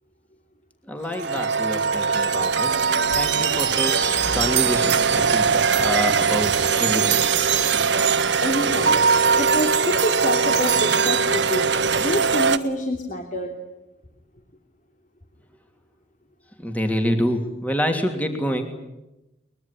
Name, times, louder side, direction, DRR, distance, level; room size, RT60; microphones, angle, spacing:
voice 1, 0.8-2.9 3.1-7.2 7.7-7.8 16.6-18.7, equal, 10° left, 4 dB, 2.9 m, -27 dB
sound 1, 1.1-12.6, right 5 dB, 80° right, 1.5 m, -21 dB
voice 2, 8.4-9.1 9.3-11.7 12.0-13.6, equal, 45° left, 2 dB, 3.1 m, -27 dB
23.0 x 21.5 x 10.0 m, 0.94 s
head